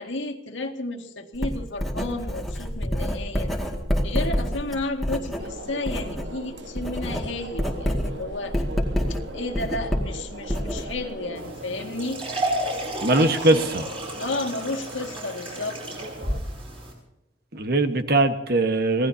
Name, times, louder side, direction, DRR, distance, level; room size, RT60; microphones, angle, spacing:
voice 1, 0.0-3.5 4.0-8.6 9.1-12.2 13.1-13.7 14.2-15.8, left 2 dB, 80° left, 3 dB, 2.1 m, -32 dB
Writing, 1.4-6.3 6.6-11.2, equal, ahead, 2.2 m, -28 dB
sound 1, 5.4-16.4, right 1 dB, 70° right, 1.6 m, -40 dB
sound 2, 11.3-16.9, right 1 dB, 30° right, 7.1 m, -32 dB
voice 2, 13.0-13.8 17.5-19.1, right 2 dB, 55° right, 8 dB, 1.4 m, -21 dB
26.5 x 18.0 x 2.8 m, 0.91 s
head